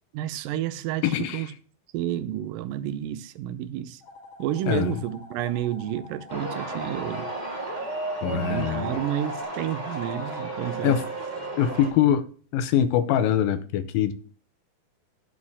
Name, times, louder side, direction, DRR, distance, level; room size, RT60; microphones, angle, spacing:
voice 1, 0.1-1.5 1.9-4.0 4.4-7.3 8.3-11.0, right 11 dB, 80° right, 2.3 m, -30 dB
voice 2, 1.0-1.4 4.7-5.0 8.2-9.0 10.8-11.0 11.6-12.2 12.5-14.1, left 10 dB, 85° left, 2.5 m, -23 dB
sound 1, 4.0-9.4, left 3 dB, 50° left, 1.7 m, -47 dB
sound 2, 6.3-11.9, right 2 dB, 20° right, 1.3 m, -33 dB
11.0 x 4.4 x 7.1 m
omnidirectional pair, 4.1 m